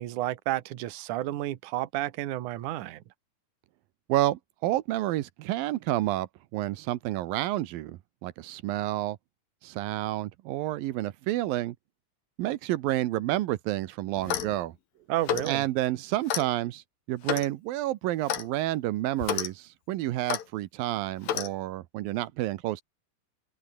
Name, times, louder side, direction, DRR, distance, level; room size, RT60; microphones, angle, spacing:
voice 1, 0.0-3.0 15.1-15.6, right 15 dB, 70° right, 2.5 m, -31 dB
voice 2, 4.1-9.2 9.6-11.8 12.4-14.8 15.4-16.8 17.1-22.8, right 15 dB, 85° right, 2.7 m, -29 dB
Clock, 14.2-14.6 15.2-15.5 16.3-16.5 17.3-17.5 18.3-18.5 19.2-19.5 20.3-20.4 21.3-21.5, left 10 dB, 85° left, 3.7 m, -30 dB
omnidirectional pair, 4.0 m